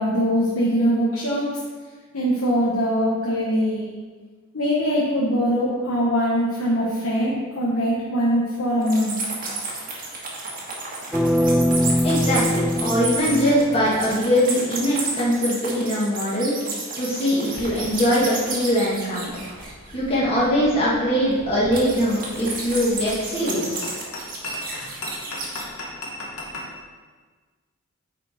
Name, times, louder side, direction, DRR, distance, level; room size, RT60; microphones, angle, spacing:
voice 1, 0.0-1.5 2.1-3.8 4.5-9.2, equal, 70° left, -6 dB, 1.2 m, -22 dB
sound 1, 8.8-20.1 21.7-25.7, right 3 dB, 40° right, 1.6 m, -32 dB
sound 2, 11.1-14.1, equal, 5° right, 0.3 m, -22 dB
voice 2, 12.0-16.5 17.0-19.3 19.9-23.9, equal, 25° left, -9 dB, 1.7 m, -22 dB
sound 3, 17.5-26.7, left 1 dB, 90° left, 1.6 m, -39 dB
9.3 x 4.4 x 4.4 m, 1.4 s
head